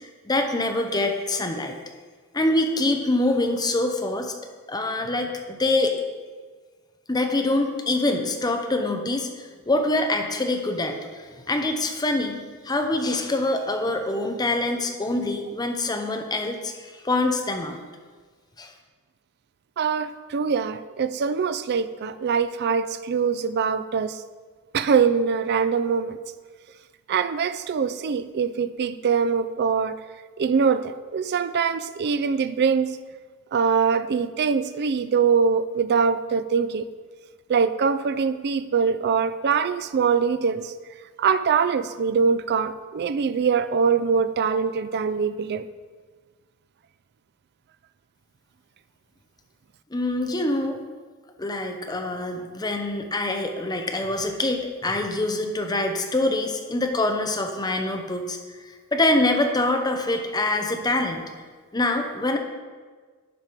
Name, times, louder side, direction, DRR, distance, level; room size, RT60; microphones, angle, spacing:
voice 1, 0.3-1.7 2.3-4.3 4.7-5.9 7.1-9.3 9.7-12.4 12.6-17.8 18.6-18.7 49.9-50.8 51.4-58.4 58.9-61.2 61.7-62.4, left 2 dB, 20° left, 4 dB, 0.7 m, -25 dB
voice 2, 19.8-24.2 24.7-26.2 27.1-29.9 30.4-32.9 33.5-36.9 37.5-40.7 41.2-45.7, right 6 dB, 50° right, 13 dB, 0.4 m, -23 dB
10.5 x 5.2 x 4.5 m, 1.5 s
head